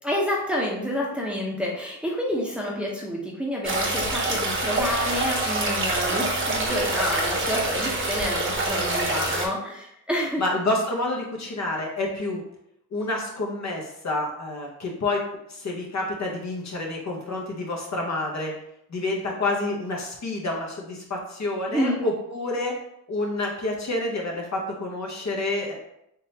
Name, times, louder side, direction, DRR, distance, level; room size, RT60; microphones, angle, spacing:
voice 1, 0.0-10.4 21.7-22.0, equal, 5° right, -4 dB, 0.9 m, -28 dB
sound 1, 3.6-9.5, right 2 dB, 30° right, 1.0 m, -26 dB
voice 2, 10.4-12.4 12.9-18.5 18.9-22.8 23.1-25.7, left 2 dB, 45° left, -1 dB, 1.0 m, -28 dB
3.7 x 3.1 x 2.8 m, 0.77 s
cardioid pair, 65°, 38 cm